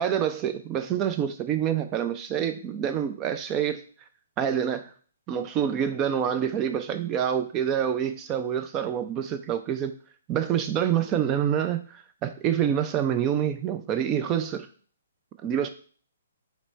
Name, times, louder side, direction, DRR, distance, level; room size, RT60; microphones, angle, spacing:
voice 1, 0.0-3.8 4.4-4.9 5.3-9.9 10.3-14.7 15.4-15.7, right 9 dB, 25° right, 9 dB, 0.5 m, -27 dB
5.1 x 3.1 x 3.2 m, 0.43 s
figure-of-eight pair, 125°, 0 cm